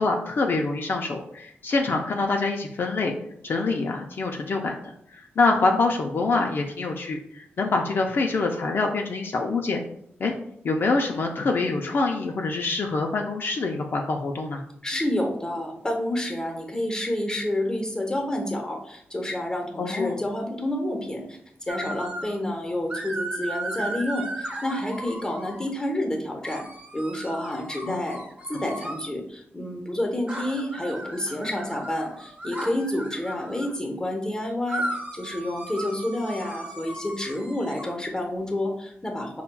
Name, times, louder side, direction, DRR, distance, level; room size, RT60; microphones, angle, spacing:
voice 1, 0.0-3.1 3.4-9.8 10.2-10.3 10.6-14.6 19.8-20.2 27.9-28.0, left 3 dB, 55° left, 2 dB, 0.4 m, -25 dB
voice 2, 14.8-21.4 21.7-26.6 26.9-28.2 28.5-34.9 35.1-39.4, left 1 dB, 15° left, 2 dB, 0.8 m, -29 dB
sound 1, 21.7-22.4 22.9-25.7 26.4-29.1 30.3-33.7 34.7-37.9, right 1 dB, 30° right, 0.7 m, -36 dB
5.4 x 2.2 x 2.2 m, 0.71 s
wide cardioid pair, 95°, 4 cm